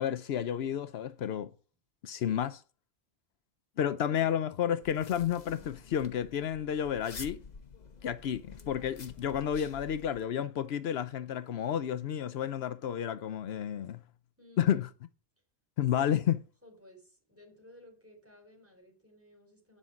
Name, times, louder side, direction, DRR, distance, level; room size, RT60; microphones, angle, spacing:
voice 1, 0.0-1.5 2.0-2.6 3.8-7.4 8.0-14.0 14.6-14.9 15.8-16.4, left 9 dB, 80° left, 0.9 m, -31 dB
sound 1, 4.8-10.2, left 5 dB, 45° left, 1.1 m, -49 dB
voice 2, 8.5-9.0 14.4-14.9 16.0-16.3 16.6-19.8, left 1 dB, 15° right, 4.3 m, -57 dB
10.0 x 5.3 x 7.2 m
omnidirectional pair, 1.1 m